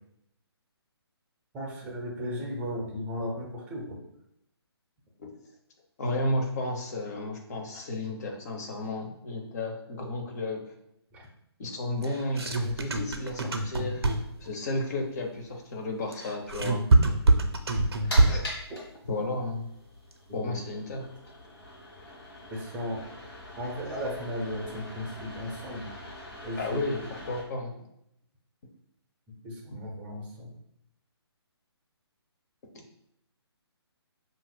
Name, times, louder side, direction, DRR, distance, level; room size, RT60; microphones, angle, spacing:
voice 1, 1.5-4.0 11.1-11.2 20.3-20.6 22.5-23.0 23.6-25.9 26.4-26.8 29.4-30.5, equal, 10° right, -2 dB, 0.7 m, -35 dB
voice 2, 6.0-10.7 11.6-14.1 14.4-16.9 18.3-18.4 19.1-19.7 20.3-21.1 26.6-27.7 29.7-29.8, left 2 dB, 40° left, 2 dB, 0.7 m, -33 dB
sound 1, 12.0-14.5 16.1-18.6, right 2 dB, 70° right, 0.5 m, -24 dB
sound 2, 17.7-27.4, left 1 dB, 55° left, 1.4 m, -43 dB
5.6 x 2.5 x 2.3 m, 0.77 s
figure-of-eight pair, 140°, 14 cm